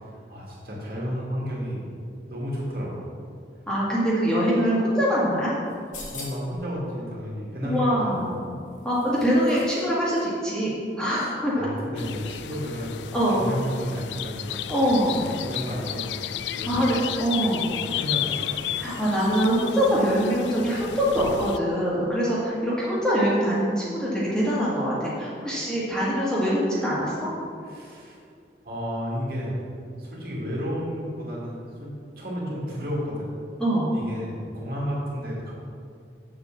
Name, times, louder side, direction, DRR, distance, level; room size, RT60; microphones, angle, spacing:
voice 1, 0.3-3.1 6.1-8.3 11.1-13.0 13.3-14.7 15.1-16.2 16.5-16.9 17.7-18.6 27.7-28.2 28.6-29.5 30.0-33.3 33.9-35.5, equal, 55° right, -5 dB, 2.3 m, -32 dB
voice 2, 3.7-5.5 7.6-8.4 8.8-10.7 11.0-11.7 13.1-13.5 14.7-15.2 16.7-17.7 18.8-27.3 33.6-33.9, equal, 5° left, -8 dB, 1.9 m, -23 dB
sound 1, 5.7-6.6 8.1-9.8 10.1-10.2, left 3 dB, 45° left, 1.4 m, -43 dB
sound 2, 12.0-21.6, left 11 dB, 80° left, 0.3 m, -33 dB
7.2 x 5.5 x 7.3 m, 2.3 s
head